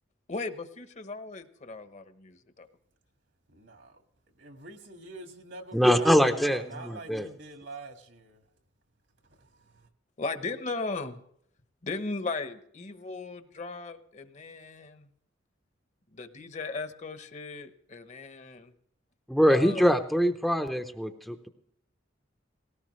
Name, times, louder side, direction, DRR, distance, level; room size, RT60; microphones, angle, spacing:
voice 1, 0.3-2.7 10.2-11.2 11.8-15.1 16.1-18.7 19.5-20.0, left 3 dB, 35° left, 1.0 m, -37 dB
voice 2, 3.5-4.0 4.4-8.4 9.4-9.9, right 2 dB, 65° right, 1.8 m, -45 dB
voice 3, 5.7-7.3 19.3-21.5, equal, ahead, 0.7 m, -23 dB
19.0 x 17.5 x 3.2 m
head